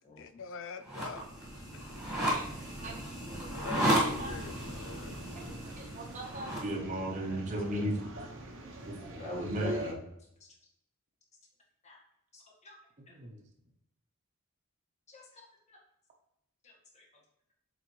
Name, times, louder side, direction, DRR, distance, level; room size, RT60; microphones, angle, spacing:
voice 1, 0.2-1.2 1.7-2.0 3.5-5.3, left 5 dB, 60° left, 11 dB, 0.5 m, -44 dB
sound 1, 0.8-6.7, right 1 dB, 5° right, 2.2 m, -34 dB
voice 2, 3.3-4.3 5.6-8.1 8.9-10.0 13.1-13.4, right 1 dB, 35° right, 0 dB, 1.0 m, -37 dB
sound 2, 4.2-9.9, right 1 dB, 60° right, 0.9 m, -43 dB
voice 3, 9.2-10.0 10.4-10.5 11.8-12.0 12.3-12.8 13.1-13.2 15.1-15.4 15.7-15.8 16.6-17.1, left 1 dB, 30° left, -2 dB, 1.6 m, -44 dB
7.8 x 4.1 x 3.2 m, 0.79 s
head